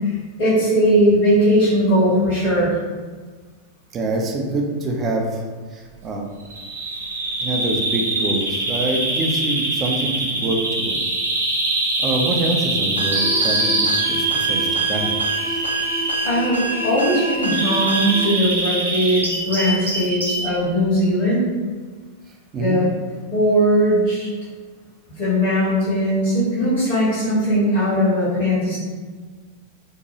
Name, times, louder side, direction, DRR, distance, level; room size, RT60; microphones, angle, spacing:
voice 1, 0.0-2.7 16.2-21.5 22.6-22.9 23.3-24.3 25.2-28.8, equal, 50° left, -10 dB, 1.1 m, -19 dB
voice 2, 3.9-5.4 5.7-6.3 7.4-11.0 12.0-15.1 22.5-22.8, right 2 dB, 30° right, 1 dB, 0.4 m, -25 dB
Bird vocalization bird call bird song, 6.5-20.5, right 2 dB, 75° right, 0.5 m, -24 dB
sound 1, 13.0-18.3, right 2 dB, 80° left, 0.4 m, -28 dB
2.7 x 2.2 x 2.9 m, 1.4 s
figure-of-eight pair, 90°, 0 cm